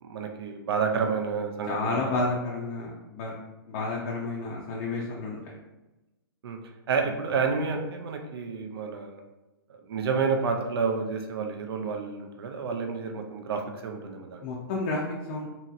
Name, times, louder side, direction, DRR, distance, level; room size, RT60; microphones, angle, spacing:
voice 1, 0.0-2.3 4.4-4.5 6.4-6.6 6.9-9.2 9.7-14.4, right 5 dB, 80° right, 4 dB, 0.4 m, -30 dB
voice 2, 1.7-3.4 3.7-5.5 14.4-15.5, left 3 dB, 35° left, -3 dB, 0.4 m, -31 dB
2.8 x 2.7 x 2.4 m, 1.0 s
hypercardioid pair, 160°, 13 cm